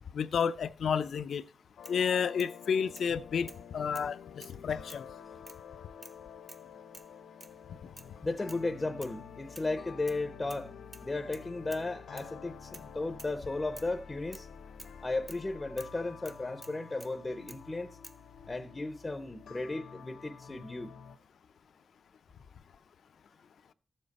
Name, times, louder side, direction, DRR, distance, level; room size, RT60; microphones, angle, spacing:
voice 1, 0.1-1.4 1.9-5.0, left 7 dB, 65° left, 0.5 m, -31 dB
sound 1, 1.3-1.4 1.8-2.5 3.0-3.1 3.5-3.7 3.9-4.6 4.9-5.1 5.5-5.6 6.0-6.2 6.5-6.7 6.9-7.1 7.4-7.6 8.0-8.1 8.5-8.7 9.0-9.2 9.6-10.2 10.5-10.7 10.9-11.9 12.2-12.3 12.7-12.9 13.2-13.4 13.8-13.9 14.3-14.5 14.8-15.0 15.3-15.4 15.8-16.0 16.3-17.2 17.5-17.7 18.0-18.2, right 2 dB, 20° right, 0.6 m, -51 dB
sound 2, 1.8-21.2, left 7 dB, 80° left, 1.1 m, -49 dB
voice 2, 8.2-10.7 11.0-14.5 15.0-17.9 18.5-20.9, left 2 dB, 20° left, 0.6 m, -35 dB
14.0 x 7.3 x 4.1 m
wide cardioid pair, 155°, 0 cm